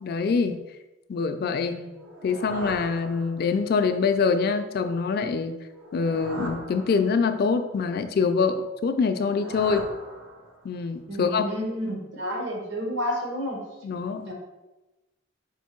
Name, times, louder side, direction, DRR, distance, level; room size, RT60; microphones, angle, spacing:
voice 1, 0.0-0.6 1.1-1.8 2.2-5.6 5.9-9.9 10.6-11.5 13.8-14.3, left 5 dB, 50° left, 8 dB, 0.3 m, -25 dB
voice 2, 1.6-1.9 11.1-13.6 14.3-14.4, equal, 70° right, 0 dB, 1.1 m, -30 dB
sound 1, 1.9-3.7 5.7-7.5 9.0-10.8, right 1 dB, 85° right, 0.8 m, -40 dB
4.4 x 2.5 x 4.4 m, 1.1 s
head